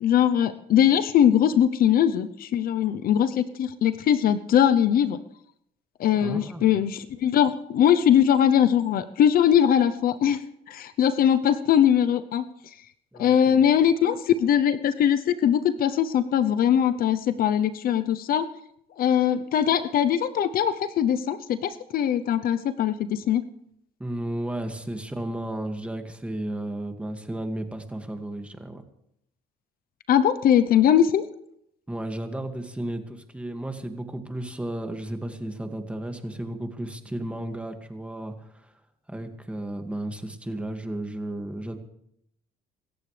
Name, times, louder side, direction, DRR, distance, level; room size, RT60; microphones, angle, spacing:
voice 1, 0.0-5.2 6.0-10.4 10.7-12.4 13.2-18.5 19.0-23.4 30.1-31.2, left 9 dB, 60° left, 11 dB, 0.8 m, -21 dB
voice 2, 6.2-6.8 13.1-13.6 24.0-28.8 31.9-38.3 38.6-38.7 39.1-41.7, right 1 dB, 5° right, 5 dB, 2.1 m, -33 dB
26.5 x 14.0 x 3.4 m, 0.75 s
cardioid pair, 110°, 17 cm